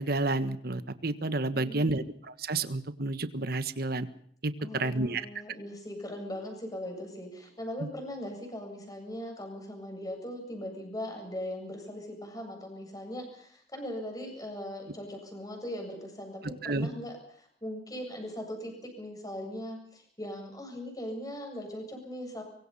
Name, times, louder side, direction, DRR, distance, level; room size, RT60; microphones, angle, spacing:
voice 1, 0.0-4.1 4.4-5.2 16.6-16.9, right 2 dB, 55° right, 11 dB, 1.5 m, -30 dB
voice 2, 1.5-2.1 4.6-22.4, left 1 dB, 20° left, 4 dB, 7.9 m, -40 dB
24.5 x 23.5 x 5.7 m, 0.64 s
head